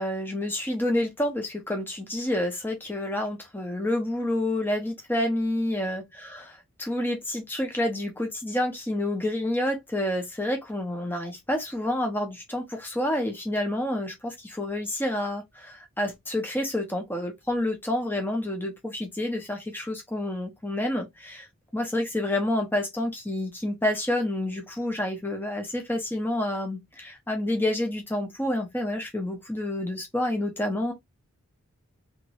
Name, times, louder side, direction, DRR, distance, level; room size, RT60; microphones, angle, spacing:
voice 1, 0.0-21.5 21.7-30.9, left 1 dB, 10° left, 1.1 m, -29 dB
4.3 x 3.4 x 3.0 m
head